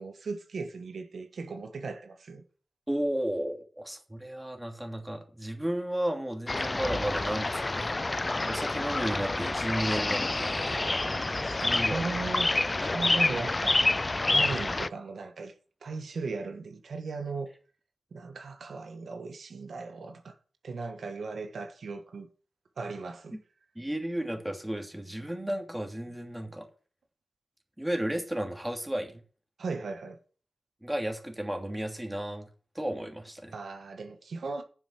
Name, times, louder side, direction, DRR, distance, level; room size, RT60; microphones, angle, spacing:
voice 1, 0.0-2.4 10.7-12.5 12.8-13.9 14.3-15.5 15.8-17.5 18.1-20.4 20.6-22.3 22.8-23.4 29.6-30.2 33.5-34.6, right 4 dB, 85° right, 1.5 m, -37 dB
voice 2, 2.9-10.8 11.6-12.0 14.4-14.6 23.7-26.7 27.8-29.2 30.8-32.5 32.7-33.5, right 1 dB, 10° right, 2.9 m, -33 dB
sound 1, 6.5-14.9, left 2 dB, 30° left, 0.4 m, -28 dB
10.0 x 7.2 x 6.4 m
wide cardioid pair, 75°, 0 cm